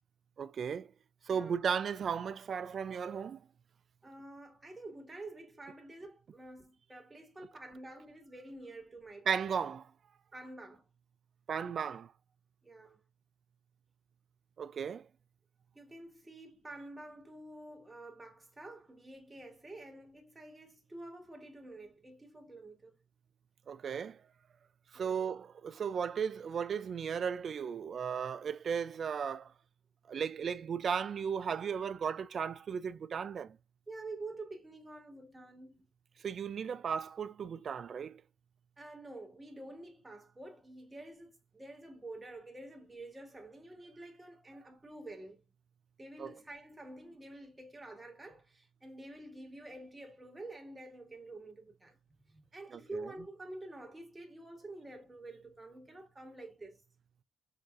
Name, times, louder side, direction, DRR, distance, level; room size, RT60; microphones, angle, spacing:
voice 1, 0.4-0.9 1.3-3.4 9.3-9.9 11.5-12.1 14.6-15.1 23.7-24.2 24.9-29.5 30.1-33.6 36.2-38.2 46.2-46.3 52.7-52.8, right 7 dB, 50° right, 0.4 m, -35 dB
voice 2, 4.0-9.3 10.3-10.9 12.6-13.0 15.7-23.0 24.9-25.2 33.9-35.8 38.8-45.4 46.0-52.0 52.3-56.8, right 2 dB, 15° right, 1.8 m, -48 dB
6.5 x 2.6 x 2.5 m
cardioid pair, 90°, 0 cm